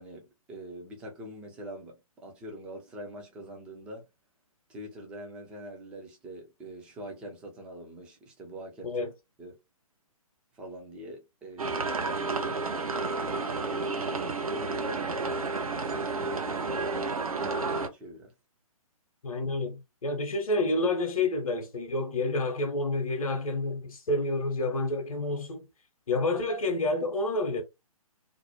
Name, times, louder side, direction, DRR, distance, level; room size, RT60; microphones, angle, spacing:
voice 1, 0.0-4.0 4.7-9.0 9.4-9.6 10.5-12.6 13.6-15.2 15.9-18.3, right 1 dB, 5° right, 0.3 m, -44 dB
sound 1, 11.6-17.9, right 3 dB, 70° right, 0.7 m, -31 dB
voice 2, 19.2-25.7 26.1-27.6, left 2 dB, 70° left, 0.7 m, -29 dB
2.5 x 2.0 x 2.9 m
figure-of-eight pair, 130°, 19 cm